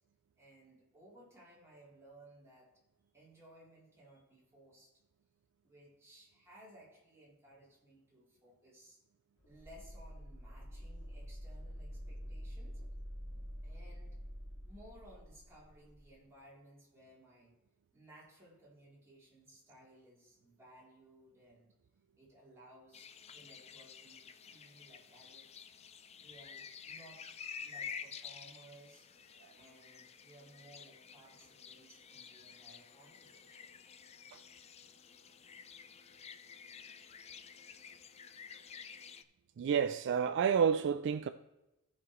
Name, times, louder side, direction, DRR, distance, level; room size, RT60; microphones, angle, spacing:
voice 1, 0.4-2.7 3.1-4.9 5.6-9.0 9.4-12.8 13.6-14.2 14.6-17.5 17.9-21.7 22.2-25.5 26.2-29.1 29.5-33.8, right 1 dB, 10° right, 3.3 m, -60 dB
sound 1, 9.4-16.0, equal, 50° left, 2.0 m, -47 dB
sound 2, 22.9-39.2, left 7 dB, 30° left, 0.4 m, -51 dB
voice 2, 39.6-41.3, right 7 dB, 55° right, 0.3 m, -29 dB
16.5 x 5.7 x 3.1 m
head